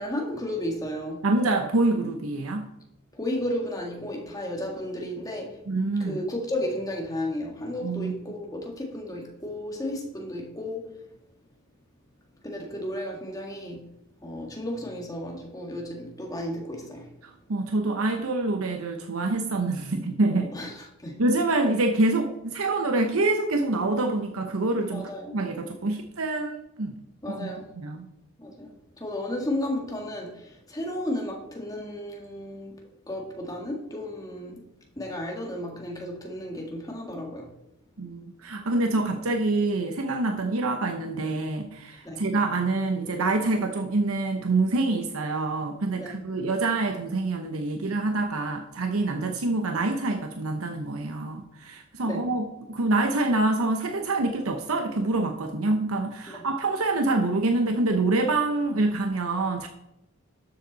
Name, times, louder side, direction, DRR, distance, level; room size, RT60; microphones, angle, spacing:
voice 1, 0.0-1.3 3.1-5.6 6.0-11.0 12.4-13.9 14.2-17.1 20.3-21.2 24.9-25.4 27.2-27.7 28.4-34.6 35.0-37.5 42.0-42.2 46.0-46.2 52.0-52.3 56.3-56.4, left 1 dB, 15° left, 1.7 m, -33 dB
voice 2, 1.2-2.7 5.7-6.2 7.8-8.2 17.2-20.5 21.2-27.0 27.3-28.1 38.0-59.7, right 2 dB, 80° right, 0.9 m, -26 dB
12.5 x 7.2 x 4.0 m
head